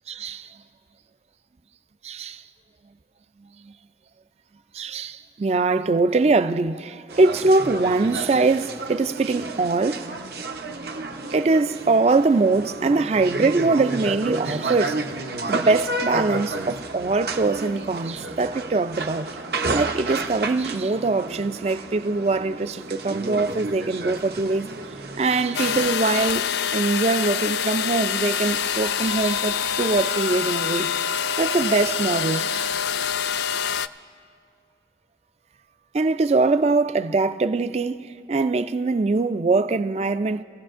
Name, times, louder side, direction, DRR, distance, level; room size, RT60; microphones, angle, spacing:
voice 1, 0.1-0.5 2.0-2.4 4.7-10.1 11.3-15.1 15.5-19.3 19.7-24.7 25.2-32.7 35.9-40.4, right 3 dB, 35° right, 0.4 m, -22 dB
sound 1, 7.1-25.9, right 2 dB, 65° right, 0.8 m, -31 dB
sound 2, 25.5-33.9, left 7 dB, 70° left, 0.3 m, -25 dB
27.5 x 16.0 x 2.5 m
head